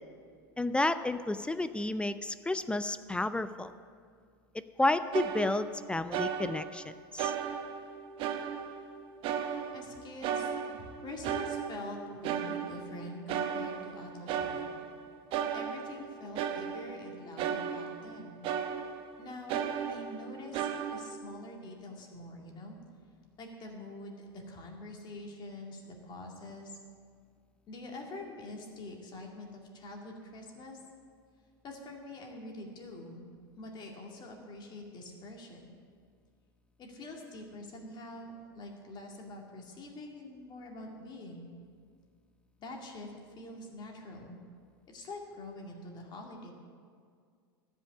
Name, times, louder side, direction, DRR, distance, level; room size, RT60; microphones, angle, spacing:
voice 1, 0.6-3.7 4.8-7.3, left 2 dB, 10° left, 13 dB, 0.4 m, -31 dB
sound 1, 5.1-5.8 6.1-6.8 7.2-8.9 9.2-10.0 10.2-13.0 13.3-15.0 15.3-18.2 18.4-19.1 19.5-21.1, right 8 dB, 45° right, 0.9 m, -35 dB
voice 2, 9.5-14.7 15.5-18.5 19.2-19.6 19.9-22.8 23.4-26.8 27.7-30.8 31.6-35.8 36.8-41.5 42.6-44.4 44.9-46.5, left 2 dB, 35° left, 1 dB, 2.3 m, -45 dB
13.0 x 5.5 x 8.5 m, 2.1 s
hypercardioid pair, 85°, 12 cm